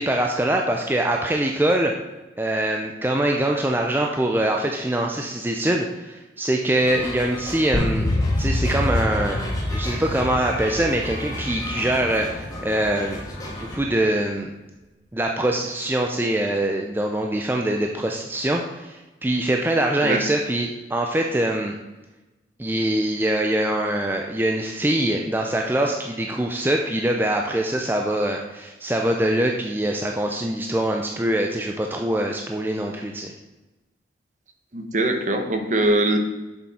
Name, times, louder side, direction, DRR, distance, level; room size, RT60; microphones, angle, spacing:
voice 1, 0.0-1.9 2.4-8.1 8.4-9.4 9.7-13.2 13.5-14.5 15.1-21.8 22.6-33.3, right 1 dB, 10° right, 2 dB, 0.4 m, -23 dB
sound 1, 6.8-13.8, left 1 dB, 20° left, 1.7 m, -34 dB
sound 2, 7.7-13.1, left 1 dB, 40° left, 0.7 m, -26 dB
voice 2, 34.7-36.2, right 1 dB, 45° right, 5 dB, 0.9 m, -21 dB
7.2 x 6.9 x 4.2 m, 1.1 s
head